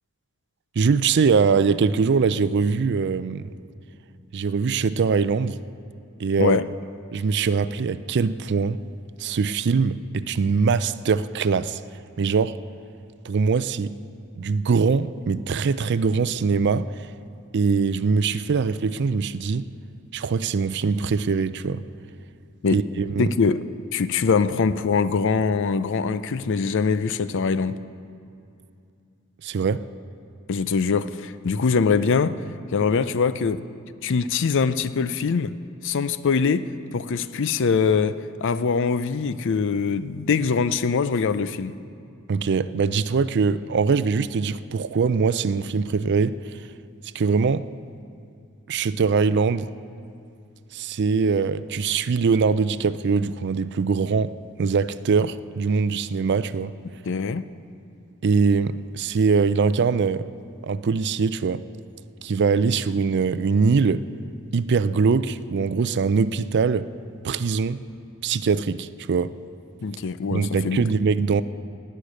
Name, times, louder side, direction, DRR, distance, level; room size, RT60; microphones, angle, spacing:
voice 1, 0.8-3.5 4.3-5.6 6.2-6.6 7.1-8.8 9.2-11.8 12.2-12.6 13.2-14.0 14.4-16.9 17.5-19.6 20.1-21.8 22.7-23.3 29.4-29.8 42.3-46.4 47.1-47.7 48.7-49.7 50.7-56.7 58.2-60.3 60.6-61.6 62.2-64.1 64.5-66.9 67.2-67.8 68.2-69.3 70.3-71.4, right 5 dB, 55° right, 0.4 m, -22 dB
voice 2, 23.2-23.7 23.9-27.8 30.5-32.4 32.7-33.6 34.0-35.5 35.8-41.8 57.0-57.5 69.8-70.9, left 5 dB, 60° left, 0.5 m, -23 dB
16.5 x 6.6 x 9.8 m
head